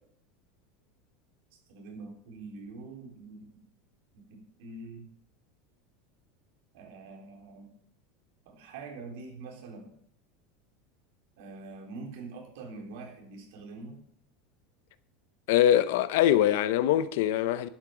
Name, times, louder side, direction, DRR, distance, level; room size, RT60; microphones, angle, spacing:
voice 1, 1.5-3.7 4.1-5.1 6.7-7.7 8.5-9.9 11.4-14.0, right 3 dB, 65° right, 3.8 m, -44 dB
voice 2, 15.5-17.7, left 11 dB, 65° left, 0.7 m, -23 dB
11.5 x 8.8 x 6.0 m
supercardioid pair, 170°, 0 cm